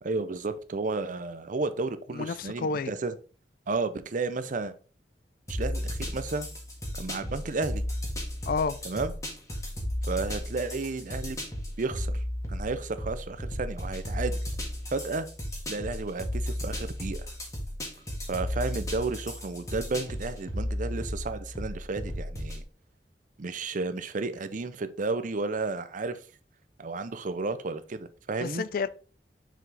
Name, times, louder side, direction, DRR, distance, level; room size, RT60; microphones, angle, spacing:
voice 1, 0.0-3.1 3.7-4.7 5.5-6.5 6.9-7.8 8.8-9.1 10.1-11.4 11.8-12.2 12.5-14.4 14.9-15.3 15.7-17.2 18.3-22.6 23.4-26.2 26.8-28.6, right 3 dB, 45° right, 0.5 m, -32 dB
voice 2, 2.1-2.9 8.5-8.8 28.4-28.9, left 4 dB, 55° left, 0.4 m, -30 dB
sound 1, 5.5-22.6, equal, 20° left, 1.7 m, -34 dB
6.0 x 4.7 x 3.4 m
head